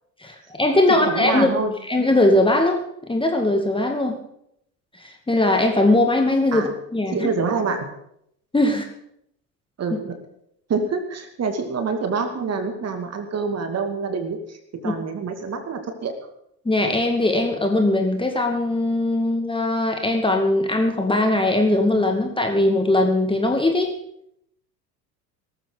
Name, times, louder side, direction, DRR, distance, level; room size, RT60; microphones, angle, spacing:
voice 1, 0.2-1.5 1.9-4.2 5.3-7.3 8.5-8.8 14.8-14.9 16.7-23.9, left 2 dB, 10° left, 4 dB, 2.2 m, -20 dB
voice 2, 0.9-1.7 6.5-6.7 7.1-7.9 9.8-10.2 10.7-14.6 14.8-16.1, right 4 dB, 30° right, 6 dB, 2.6 m, -26 dB
18.5 x 14.0 x 4.1 m, 0.75 s
figure-of-eight pair, 75°, 50 cm